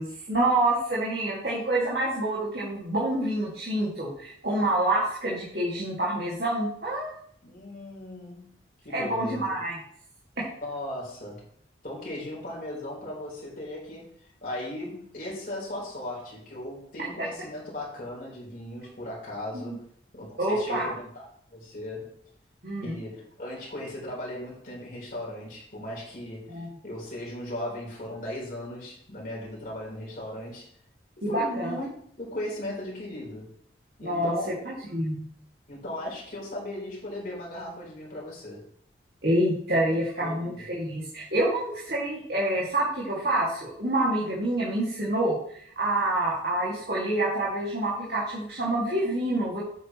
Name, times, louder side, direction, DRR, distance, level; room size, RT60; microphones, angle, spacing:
voice 1, 0.0-7.2 8.9-9.8 10.4-10.5 19.5-19.8 20.4-20.9 22.6-23.0 26.5-26.7 31.2-31.7 34.0-34.3 34.7-35.3 39.2-45.4 45.8-49.6, right 1 dB, 55° right, -6 dB, 2.1 m, -27 dB
voice 2, 7.4-8.6 8.8-9.6 10.6-11.4 11.8-14.1 14.4-19.8 20.1-22.1 22.8-30.7 31.3-31.9 32.2-33.5 34.0-34.7 35.7-38.6 40.2-40.7, left 1 dB, 45° left, -4 dB, 3.8 m, -37 dB
8.5 x 8.4 x 3.0 m, 0.64 s
head